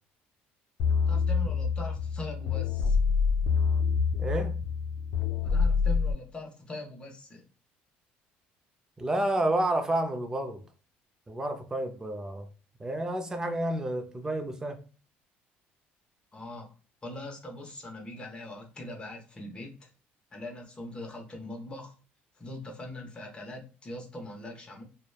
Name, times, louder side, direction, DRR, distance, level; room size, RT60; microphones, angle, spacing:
sound 1, 0.8-6.1, left 5 dB, 75° left, 0.5 m, -26 dB
voice 1, 1.1-3.0 5.4-7.5 16.3-16.7 17.0-19.9 20.3-21.9 22.3-24.8, left 1 dB, 25° left, 0.8 m, -41 dB
voice 2, 4.2-4.6 9.0-10.6 11.3-12.5 12.8-14.8, right 1 dB, 15° right, 0.4 m, -30 dB
2.9 x 2.1 x 2.2 m
cardioid pair, 100°, 4 cm